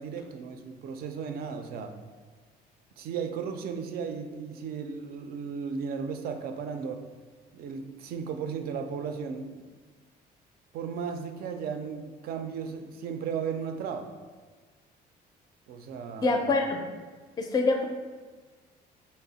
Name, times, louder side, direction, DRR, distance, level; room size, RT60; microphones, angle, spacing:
voice 1, 0.0-1.9 3.0-7.0 7.5-9.6 10.7-14.1 15.7-16.4, right 6 dB, 65° right, 6 dB, 0.4 m, -35 dB
voice 2, 16.2-16.9 17.4-17.8, left 3 dB, 20° left, 3 dB, 0.4 m, -25 dB
4.0 x 2.1 x 3.9 m, 1.4 s
cardioid pair, 110°, 17 cm